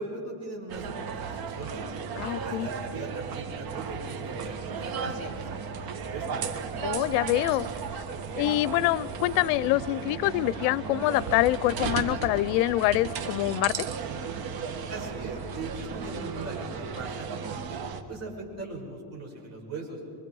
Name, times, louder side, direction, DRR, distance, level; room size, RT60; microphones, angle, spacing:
voice 1, 0.0-1.9 2.2-6.4 14.8-17.8 18.1-20.0, right 2 dB, 30° right, -1 dB, 5.8 m, -39 dB
sound 1, 0.7-18.0, right 6 dB, 45° right, 1.6 m, -35 dB
voice 2, 2.2-2.7 6.8-7.7 8.4-13.7, left 18 dB, 80° left, 21 dB, 0.6 m, -25 dB
25.5 x 24.5 x 4.7 m, 2.5 s
cardioid pair, 120°, 49 cm